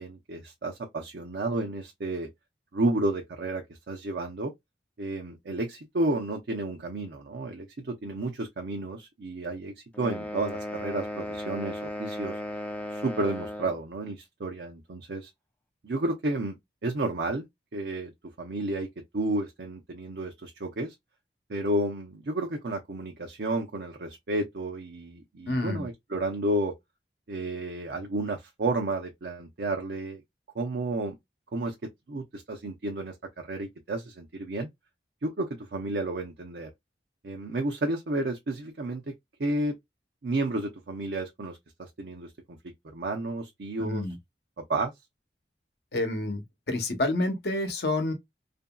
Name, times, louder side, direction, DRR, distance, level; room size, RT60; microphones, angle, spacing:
voice 1, 0.0-2.3 2.7-4.5 5.0-12.4 12.9-15.3 15.8-16.6 16.8-17.4 17.7-18.1 18.4-18.9 19.1-20.9 21.5-26.7 27.3-30.2 30.5-31.2 31.5-31.7 32.1-34.7 35.2-36.7 37.2-39.0 39.4-39.7 40.2-42.6 42.9-44.0 44.7-44.9, right 2 dB, 70° right, 0.5 m, -31 dB
sound 1, 9.9-13.8, left 1 dB, 10° left, 0.4 m, -36 dB
voice 2, 25.5-25.9 43.8-44.2 45.9-48.1, left 2 dB, 65° left, 0.8 m, -29 dB
2.8 x 2.6 x 2.2 m
head